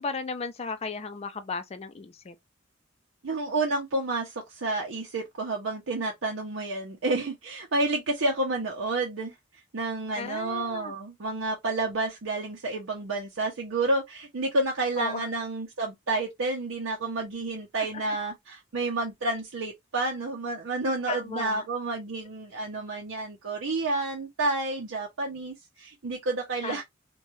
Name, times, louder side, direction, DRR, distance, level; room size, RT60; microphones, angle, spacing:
voice 1, 0.0-2.4 10.1-10.9 15.0-15.3 18.1-18.2 21.1-21.6 26.6-26.8, left 4 dB, 30° left, 0.4 m, -35 dB
voice 2, 3.2-9.3 9.7-26.8, right 2 dB, 85° right, 0.6 m, -30 dB
3.0 x 2.2 x 2.7 m
head